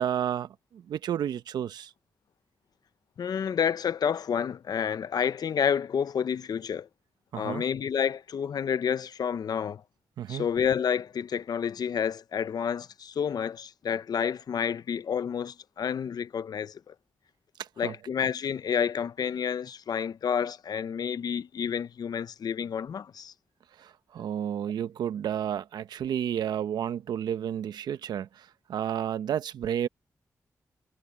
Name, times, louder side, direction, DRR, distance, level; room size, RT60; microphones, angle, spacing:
voice 1, 0.0-1.9 7.3-7.6 10.2-10.5 17.6-17.9 23.8-29.9, right 9 dB, 85° right, 1.0 m, -31 dB
voice 2, 3.2-6.9 7.3-9.8 10.3-16.9 17.8-23.3, left 7 dB, 70° left, 0.8 m, -29 dB
supercardioid pair, 40°, 7 cm